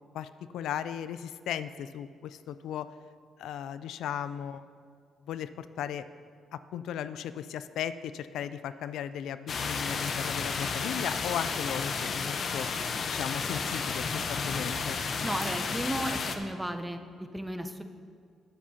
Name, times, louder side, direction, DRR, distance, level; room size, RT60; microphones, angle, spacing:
voice 1, 0.1-2.9 3.4-4.6 5.3-6.1 6.5-12.7 13.1-15.0, left 9 dB, 80° left, 13 dB, 0.3 m, -36 dB
sound 1, 9.5-16.4, left 5 dB, 50° left, 0.8 m, -32 dB
voice 2, 15.2-17.8, right 1 dB, 10° right, 7 dB, 0.7 m, -34 dB
20.5 x 7.4 x 2.8 m, 2.1 s
cardioid pair, 90°, 0 cm